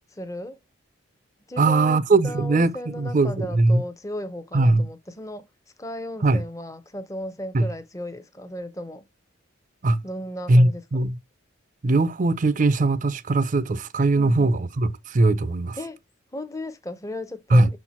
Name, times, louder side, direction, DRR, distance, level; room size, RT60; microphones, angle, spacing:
voice 1, 0.1-0.6 1.5-5.5 5.8-9.1 10.0-11.0 14.2-14.6 15.8-16.0 16.3-17.8, left 1 dB, 15° left, 0.7 m, -35 dB
voice 2, 1.6-3.8 4.5-4.9 6.2-6.4 7.5-7.7 9.8-10.0 10.5-11.2 11.8-15.8 17.5-17.7, right 2 dB, 40° right, 0.5 m, -20 dB
6.3 x 4.4 x 4.3 m
head